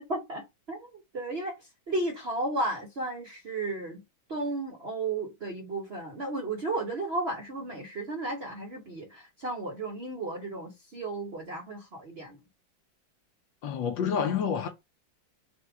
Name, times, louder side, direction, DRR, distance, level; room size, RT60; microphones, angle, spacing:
voice 1, 0.1-1.5 1.9-4.0 4.3-12.4, right 2 dB, 45° right, 0.9 m, -34 dB
voice 2, 13.6-14.7, left 7 dB, 70° left, 1.5 m, -28 dB
4.3 x 2.2 x 4.6 m
omnidirectional pair, 2.2 m